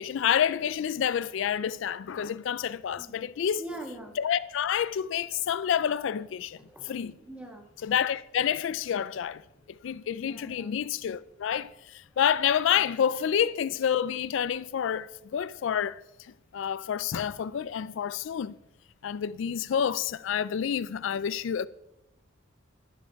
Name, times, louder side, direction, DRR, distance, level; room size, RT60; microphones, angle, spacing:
voice 1, 0.0-3.6 4.2-6.6 6.8-7.1 7.8-9.4 9.8-16.0 16.5-18.6 19.0-21.7, left 8 dB, 75° left, 0.3 m, -28 dB
voice 2, 3.0-3.3 3.6-4.1 6.6-7.6 9.5-9.6 10.2-10.7 15.4-15.5, right 1 dB, 5° right, 1.6 m, -43 dB
11.5 x 11.5 x 4.6 m
head